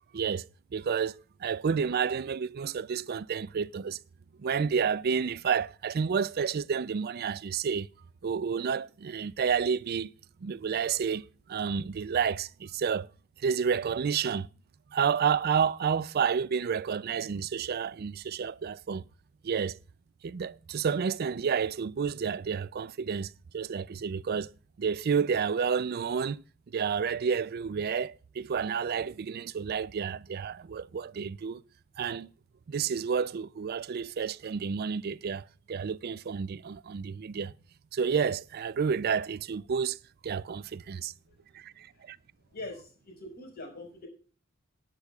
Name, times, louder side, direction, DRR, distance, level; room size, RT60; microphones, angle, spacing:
voice 1, 0.1-4.0 4.4-7.9 8.2-10.1 10.4-13.1 13.4-14.5 14.9-19.0 19.4-19.8 20.2-24.5 24.8-26.4 26.7-31.6 32.0-32.3 32.7-37.5 37.9-40.0 40.2-41.1 41.5-42.2, right 6 dB, 50° right, 0.4 m, -30 dB
voice 2, 42.5-44.1, left 2 dB, 50° left, 5.1 m, -44 dB
19.0 x 9.8 x 2.3 m
head